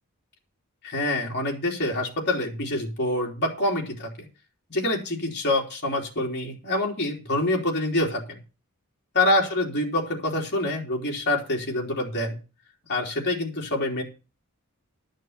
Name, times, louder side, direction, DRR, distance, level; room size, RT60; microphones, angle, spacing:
voice 1, 0.8-4.3 4.7-8.4 9.1-12.4 12.9-14.0, left 1 dB, 50° left, -1 dB, 3.6 m, -26 dB
12.5 x 6.4 x 6.7 m, 0.33 s
head